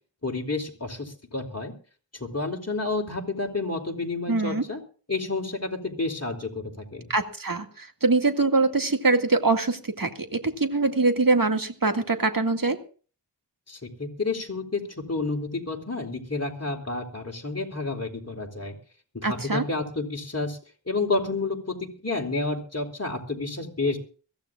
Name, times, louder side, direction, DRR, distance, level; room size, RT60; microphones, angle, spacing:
voice 1, 0.2-1.7 2.1-4.8 5.1-7.1 13.7-14.8 15.1-18.8 19.1-20.6 20.9-24.0, left 3 dB, 35° left, 1 dB, 3.6 m, -30 dB
voice 2, 4.3-4.6 7.1-12.8 19.2-19.6, right 3 dB, 50° right, 6 dB, 2.1 m, -23 dB
22.5 x 15.5 x 2.4 m, 0.39 s
wide cardioid pair, 50°, 42 cm